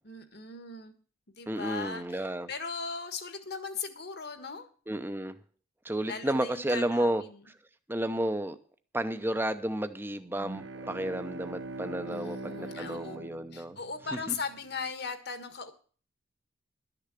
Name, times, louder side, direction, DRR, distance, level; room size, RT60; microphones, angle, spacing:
voice 1, 0.0-0.9 1.3-4.7 6.0-7.4 12.1-13.2 13.5-15.7, left 5 dB, 50° left, 9 dB, 1.6 m, -38 dB
voice 2, 1.5-2.5 4.9-5.4 5.8-7.2 7.9-8.6 8.9-13.8 14.3-14.4, right 1 dB, 10° right, 10 dB, 0.7 m, -32 dB
sound 1, 10.3-14.3, right 2 dB, 60° right, 1.0 m, -42 dB
12.5 x 6.8 x 8.3 m, 0.42 s
head